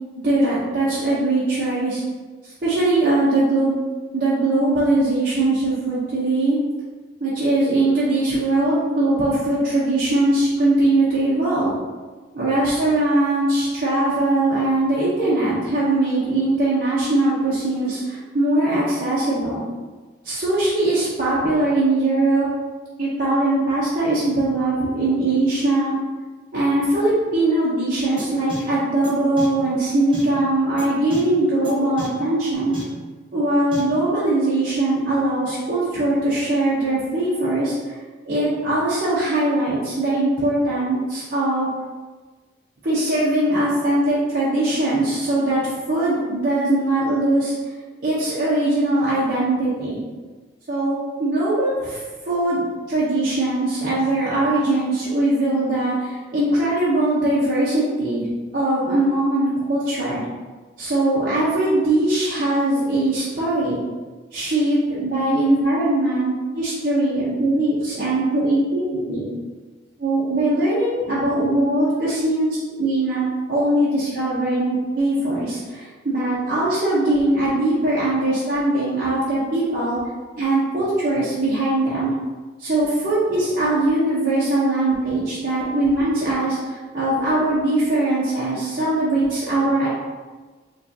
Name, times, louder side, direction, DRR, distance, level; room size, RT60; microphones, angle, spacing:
voice 1, 0.1-2.0 2.4-3.8 4.1-6.6 7.2-11.7 12.3-19.6 20.2-22.5 23.0-25.9 26.5-32.7 33.3-38.0 38.2-41.7 42.8-47.5 48.0-50.0 50.7-52.6 52.9-58.3 58.5-60.2 60.8-63.8 64.3-69.3 70.0-80.0 80.4-82.1 82.6-89.9, right 2 dB, 50° right, -10 dB, 0.8 m, -21 dB
sound 1, 28.2-28.3 28.5-28.6 29.0-29.1 29.4-29.5 30.1-30.2 30.8-30.9 31.1-31.2 31.6-31.7 32.0-32.1 32.7-32.8 33.7-33.8, equal, 30° right, 1.1 m, -32 dB
4.8 x 2.4 x 2.7 m, 1.3 s
head